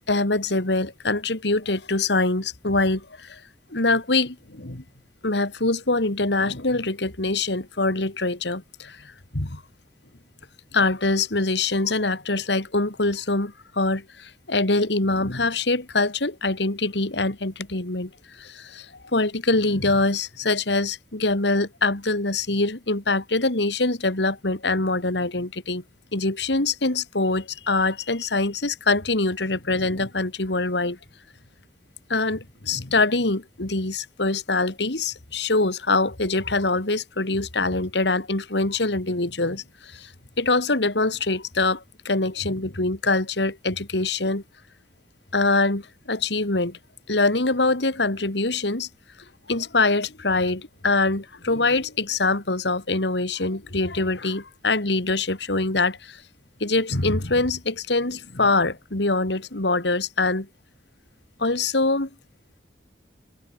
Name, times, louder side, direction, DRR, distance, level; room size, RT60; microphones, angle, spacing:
voice 1, 0.1-3.4 3.7-4.8 5.2-9.6 10.7-25.8 26.1-31.0 32.1-40.1 40.4-44.4 45.3-46.8 47.1-48.9 49.5-56.2 56.6-60.5 61.4-62.1, left 3 dB, 75° left, 2.5 m, -24 dB
head